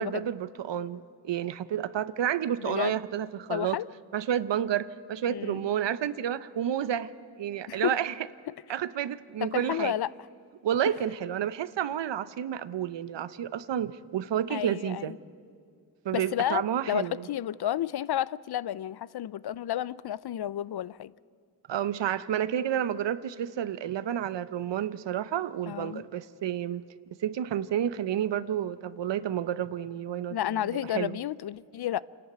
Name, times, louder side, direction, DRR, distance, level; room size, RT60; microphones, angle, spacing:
voice 1, 0.0-3.8 4.1-8.1 8.7-9.9 10.6-15.1 16.0-17.3 21.7-26.8 27.2-30.4 30.9-31.2, right 10 dB, 75° right, 0.8 m, -30 dB
voice 2, 2.6-3.0 3.5-3.9 5.3-5.7 7.7-7.9 9.4-10.1 14.5-15.2 16.1-21.1 25.7-26.0 30.3-32.0, left 11 dB, 60° left, 0.5 m, -31 dB
26.5 x 11.0 x 9.2 m
cardioid pair, 45°, 44 cm